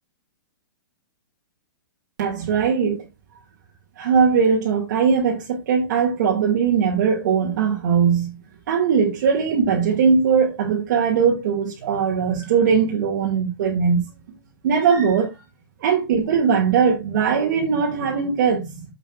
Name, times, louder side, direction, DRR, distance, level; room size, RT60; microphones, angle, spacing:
voice 1, 2.2-3.0 4.0-8.3 8.7-14.1 14.6-15.3 15.8-18.9, right 6 dB, 55° right, 2.1 m, -20 dB
9.9 x 7.2 x 2.4 m
hypercardioid pair, 160°, 12 cm